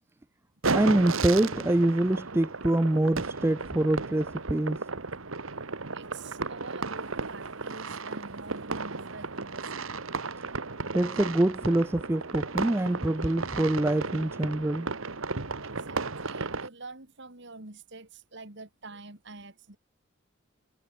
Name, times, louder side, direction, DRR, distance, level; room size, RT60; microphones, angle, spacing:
sound 1, 0.6-16.7, right 4 dB, 80° right, 1.7 m, -34 dB
voice 1, 0.7-4.8 10.9-14.9, right 1 dB, 10° right, 0.4 m, -25 dB
voice 2, 5.9-9.7 15.6-19.8, right 3 dB, 60° right, 3.0 m, -46 dB
head